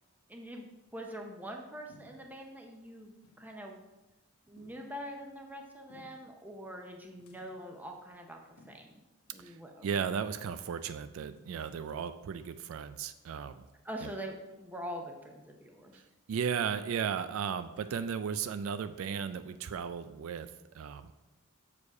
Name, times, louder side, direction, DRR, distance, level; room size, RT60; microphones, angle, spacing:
voice 1, 0.3-3.8 4.5-9.0 9.3-10.0 13.8-16.0, equal, 10° right, 2 dB, 0.7 m, -44 dB
sound 1, 1.9-2.5 2.8-2.9 3.2-3.5 3.9-4.0 4.6-5.1 5.9-6.4 7.2-7.7 8.6-9.0 9.3-9.4 10.0-10.9 11.4-12.0, left 2 dB, 85° left, 0.9 m, -60 dB
voice 2, 9.8-13.7 14.0-14.1 15.9-16.0 16.3-20.5 20.7-21.1, right 7 dB, 65° right, 11 dB, 0.3 m, -35 dB
6.5 x 4.9 x 4.7 m, 1.0 s
head